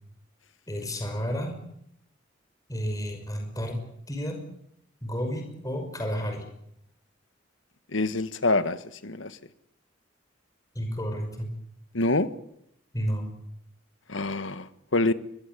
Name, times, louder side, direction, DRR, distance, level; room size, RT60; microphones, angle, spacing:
voice 1, 0.7-1.6 2.7-3.8 4.1-4.4 5.0-6.5 10.7-11.5 12.9-13.3, equal, 20° left, 3 dB, 6.0 m, -31 dB
voice 2, 7.9-8.8 9.0-9.4 11.9-12.3 14.1-15.1, left 2 dB, 85° left, 12 dB, 1.6 m, -26 dB
25.5 x 22.0 x 8.4 m, 0.75 s
head